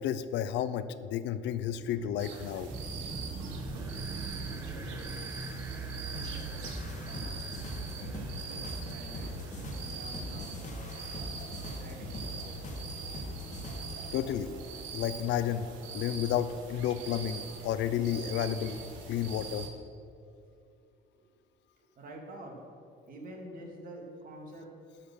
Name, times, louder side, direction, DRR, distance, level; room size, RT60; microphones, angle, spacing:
voice 1, 0.0-2.7 14.1-14.5 14.9-15.7 15.9-18.8 19.1-19.7, left 10 dB, 65° left, 13 dB, 0.6 m, -31 dB
voice 2, 1.4-2.4 4.3-6.6 7.1-7.6 8.0-8.1 8.6-9.3 9.7-10.9 11.6-13.0 18.7-18.8 20.2-20.3 22.0-22.6 23.1-24.7, right 1 dB, 45° right, 1 dB, 2.4 m, -49 dB
sound 1, 2.2-19.7, right 5 dB, 90° right, 1.5 m, -43 dB
sound 2, 2.7-10.8, right 3 dB, 10° right, 1.0 m, -42 dB
sound 3, 6.1-14.1, left 1 dB, 40° left, 1.5 m, -41 dB
13.0 x 5.7 x 6.3 m, 2.5 s
cardioid pair, 120°, 19 cm